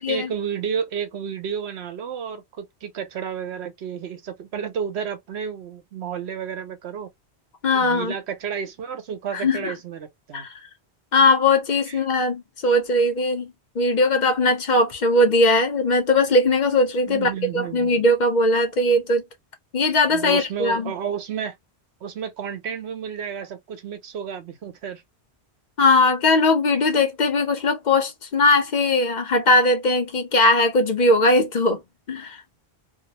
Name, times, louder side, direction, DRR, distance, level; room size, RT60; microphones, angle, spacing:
voice 1, 0.0-7.1 7.7-10.5 11.9-12.0 17.1-18.0 20.1-21.6 22.0-25.0, right 7 dB, 80° right, 1.0 m, -31 dB
voice 2, 7.6-8.1 9.3-9.7 10.3-10.5 11.1-19.2 19.7-20.9 25.8-31.8 32.1-32.4, left 2 dB, 50° left, 0.7 m, -19 dB
2.6 x 2.0 x 2.7 m
omnidirectional pair, 1.1 m